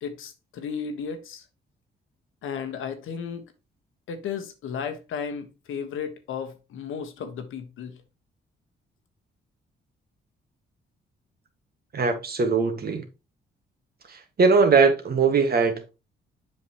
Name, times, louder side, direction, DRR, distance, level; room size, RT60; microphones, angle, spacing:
voice 1, 0.0-1.4 2.4-3.4 4.1-8.0, left 6 dB, 80° left, 1.3 m, -34 dB
voice 2, 11.9-13.1 14.1-15.9, right 4 dB, 50° right, 1.7 m, -21 dB
7.7 x 5.8 x 3.0 m
cardioid pair, 75°, 20 cm